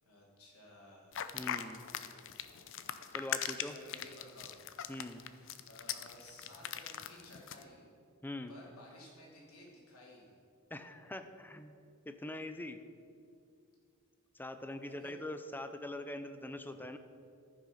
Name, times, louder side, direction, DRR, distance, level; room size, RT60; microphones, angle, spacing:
voice 1, 0.0-1.2 3.6-4.5 5.7-7.9 8.5-10.4 14.8-15.1, left 1 dB, 90° left, -3 dB, 3.0 m, -55 dB
sound 1, 1.1-7.6, left 10 dB, 60° left, 0.5 m, -40 dB
voice 2, 1.3-1.8 3.1-3.8 4.9-5.3 8.2-8.5 10.7-11.8 12.1-12.8 14.3-17.0, left 1 dB, 10° left, 9 dB, 0.5 m, -43 dB
14.0 x 6.0 x 5.7 m, 2.4 s
head